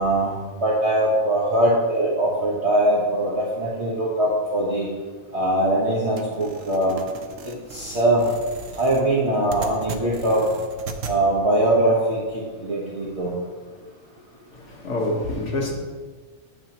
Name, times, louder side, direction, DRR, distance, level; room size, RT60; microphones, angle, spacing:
voice 1, 0.0-4.9 5.3-6.9 7.4-8.3 8.8-10.4 11.1-13.3, right 1 dB, 50° right, 1.4 m, -22 dB
sound 1, 6.2-11.2, right 5 dB, 65° right, 1.0 m, -37 dB
voice 2, 14.5-15.7, left 1 dB, 55° left, 1.5 m, -27 dB
9.3 x 7.2 x 2.9 m
omnidirectional pair, 1.5 m